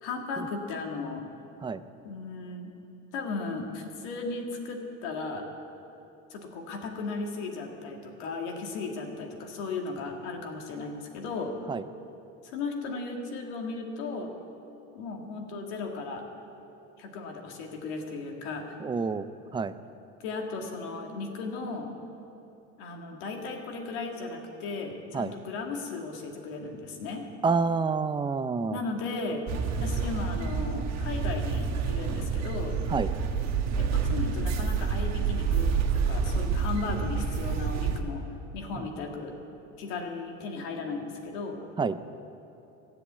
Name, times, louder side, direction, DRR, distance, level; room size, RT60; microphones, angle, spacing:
voice 1, 0.0-1.2 2.0-2.7 3.1-5.4 6.3-11.5 12.4-14.3 14.9-16.2 17.0-18.8 20.2-21.9 22.8-27.3 28.7-29.4 29.8-32.8 33.8-38.2 38.5-39.3 39.8-41.6, left 3 dB, 80° left, 2 dB, 2.1 m, -36 dB
voice 2, 18.8-19.3 19.5-19.7 25.1-25.3 27.4-28.8 32.9-33.1 38.8-38.9 41.8-42.0, right 4 dB, 15° right, 13 dB, 0.5 m, -28 dB
sound 1, 29.5-38.0, right 5 dB, 55° right, 1.3 m, -28 dB
15.0 x 7.8 x 8.2 m, 2.9 s
supercardioid pair, 95°, 33 cm